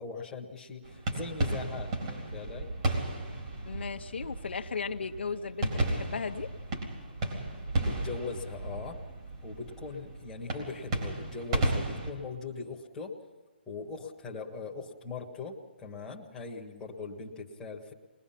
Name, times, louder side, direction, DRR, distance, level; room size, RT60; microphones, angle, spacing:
voice 1, 0.0-2.7 7.8-9.0 9.4-13.2 13.7-17.9, left 4 dB, 5° left, -3 dB, 1.6 m, -40 dB
sound 1, 0.8-12.1, right 2 dB, 35° right, 3.9 m, -34 dB
voice 2, 3.6-6.5, left 5 dB, 80° left, 6 dB, 1.0 m, -36 dB
21.5 x 21.0 x 5.9 m, 1.3 s
hypercardioid pair, 170°, 6 cm